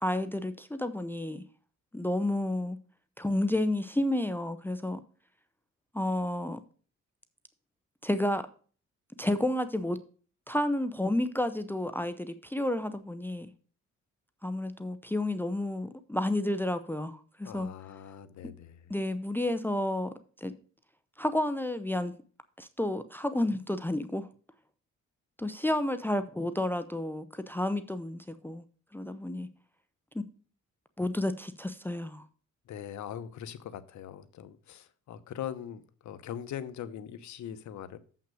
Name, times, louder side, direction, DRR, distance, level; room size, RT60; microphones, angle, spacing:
voice 1, 0.0-1.4 1.9-2.8 3.2-5.0 5.9-6.6 8.0-8.4 9.2-10.0 10.5-13.5 14.4-17.7 18.9-20.5 21.2-22.1 22.6-24.3 25.4-28.6 28.9-29.5 30.1-30.2 31.0-32.2, left 1 dB, 5° left, 0.7 m, -31 dB
voice 2, 17.4-18.9 32.7-38.0, left 9 dB, 70° left, 1.0 m, -41 dB
7.5 x 5.8 x 6.2 m
cardioid pair, 90°, 30 cm